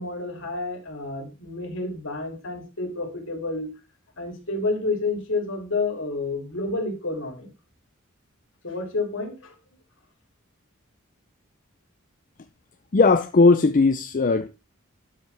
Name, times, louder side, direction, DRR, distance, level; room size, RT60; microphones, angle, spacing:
voice 1, 0.0-3.7 4.2-7.5 8.6-9.5, left 3 dB, 65° left, 2.9 m, -29 dB
voice 2, 12.9-14.5, left 3 dB, 40° left, 0.5 m, -18 dB
12.0 x 5.8 x 3.4 m
head